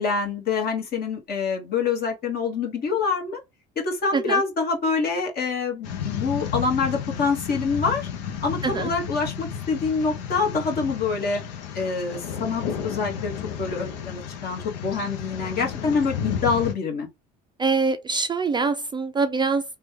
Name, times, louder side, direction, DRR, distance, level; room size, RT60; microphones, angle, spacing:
voice 1, 0.0-3.4 3.7-8.1 8.4-11.4 11.7-17.1, left 4 dB, 50° left, 1.4 m, -26 dB
sound 1, 5.8-16.7, left 7 dB, 90° left, 0.6 m, -32 dB
voice 2, 17.6-19.6, right 4 dB, 20° right, 0.4 m, -24 dB
3.1 x 2.3 x 3.3 m
supercardioid pair, 85°, 21 cm